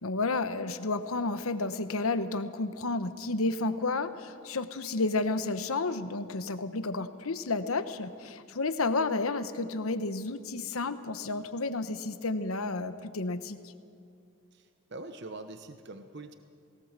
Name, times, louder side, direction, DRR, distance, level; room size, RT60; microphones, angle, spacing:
voice 1, 0.0-13.6, left 3 dB, 80° left, 11 dB, 1.1 m, -31 dB
voice 2, 14.5-16.3, right 2 dB, 50° right, 8 dB, 1.0 m, -44 dB
20.5 x 18.5 x 7.4 m, 2.5 s
head